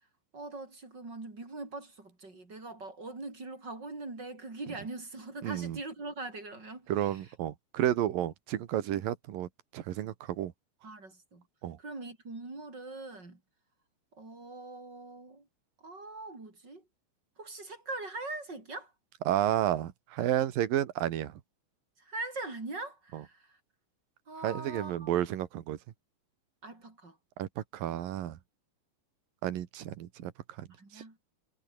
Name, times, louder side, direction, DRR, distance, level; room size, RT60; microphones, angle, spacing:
voice 1, 0.3-7.2 10.8-11.4 11.8-13.4 14.1-15.5 15.8-16.8 17.4-18.9 22.0-23.6 24.3-25.1 26.6-27.2 30.8-31.2, right 2 dB, 20° right, 5.4 m, -42 dB
voice 2, 5.4-5.8 6.9-10.5 11.6-11.8 19.3-21.4 23.1-23.2 24.4-25.8 27.4-28.4 29.4-30.3 30.6-30.7 30.9-31.0, right 12 dB, 60° right, 2.7 m, -31 dB
omnidirectional pair, 5.5 m